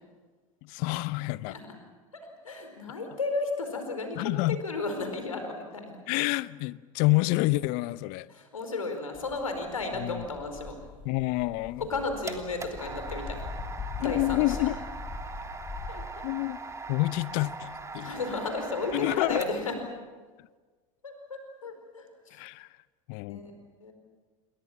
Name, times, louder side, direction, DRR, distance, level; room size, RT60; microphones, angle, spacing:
voice 1, 0.6-1.6 4.2-4.6 6.1-8.3 10.0-10.2 11.0-11.9 14.0-14.8 16.2-16.6 16.9-18.1 18.9-19.4 22.3-22.7 23.1-23.4, left 21 dB, 55° left, 0.8 m, -28 dB
voice 2, 2.1-4.2 4.6-6.0 8.3-10.8 11.8-13.4 14.0-14.7 15.9-16.0 18.0-19.8 21.0-22.4 23.2-23.5 23.8-23.9, left 3 dB, 90° left, 4.7 m, -34 dB
sound 1, 9.1-16.1, left 4 dB, 30° left, 7.2 m, -41 dB
sound 2, 11.7-19.8, right 3 dB, 15° right, 3.1 m, -41 dB
28.5 x 22.0 x 7.3 m
hypercardioid pair, 80°, 17 cm